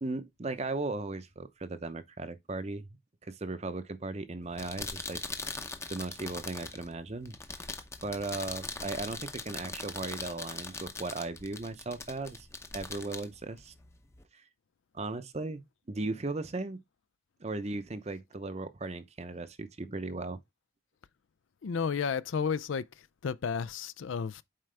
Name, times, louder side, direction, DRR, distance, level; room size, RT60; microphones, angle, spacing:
voice 1, 0.0-2.9 3.2-5.2 5.9-7.3 8.0-12.5 12.7-13.7 14.3-14.4 14.9-16.8 17.4-20.4, right 2 dB, 35° right, 0.7 m, -37 dB
sound 1, 4.4-14.2, left 3 dB, 15° left, 0.7 m, -41 dB
voice 2, 21.6-22.8 23.2-24.4, left 6 dB, 75° left, 0.4 m, -32 dB
7.6 x 4.7 x 3.3 m
head